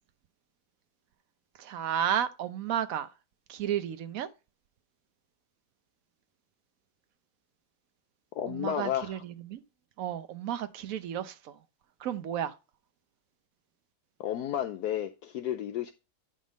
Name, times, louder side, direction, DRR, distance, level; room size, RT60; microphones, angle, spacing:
voice 1, 1.6-3.1 3.5-4.3 8.5-9.6 10.0-11.5 12.0-12.5, right 10 dB, 60° right, 1.0 m, -32 dB
voice 2, 8.4-9.2 14.2-15.9, left 10 dB, 70° left, 1.0 m, -32 dB
10.5 x 3.7 x 5.2 m
omnidirectional pair, 2.0 m